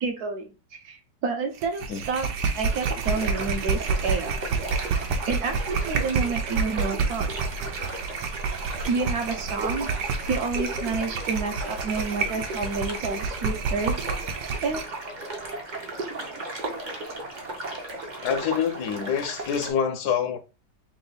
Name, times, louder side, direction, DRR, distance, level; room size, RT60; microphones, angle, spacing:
voice 1, 0.0-2.3 2.5-4.4 5.3-7.3 8.9-9.9 10.3-14.0 14.6-14.8 16.0-16.1, right 4 dB, 65° right, 1.2 m, -29 dB
sound 1, 1.6-15.0, right 4 dB, 80° right, 1.3 m, -29 dB
sound 2, 2.6-19.7, right 2 dB, 40° right, 0.7 m, -36 dB
voice 2, 18.2-20.4, left 7 dB, 75° left, 1.1 m, -26 dB
3.5 x 3.0 x 3.9 m
omnidirectional pair, 1.8 m